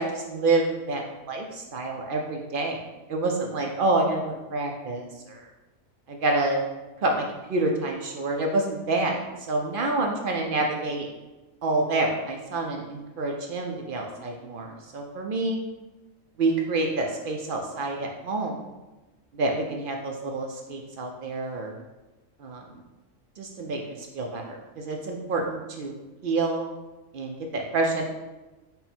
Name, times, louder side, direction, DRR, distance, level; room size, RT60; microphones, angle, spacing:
voice 1, 0.0-2.8 3.1-5.4 6.1-6.6 7.0-9.2 9.5-11.1 11.6-15.6 16.4-18.6 19.3-21.8 22.4-22.6 23.4-23.8 24.1-25.9 26.2-26.7 27.1-28.0, right 2 dB, 65° right, 1 dB, 0.5 m, -27 dB
5.3 x 2.2 x 4.2 m, 1.1 s
omnidirectional pair, 1.4 m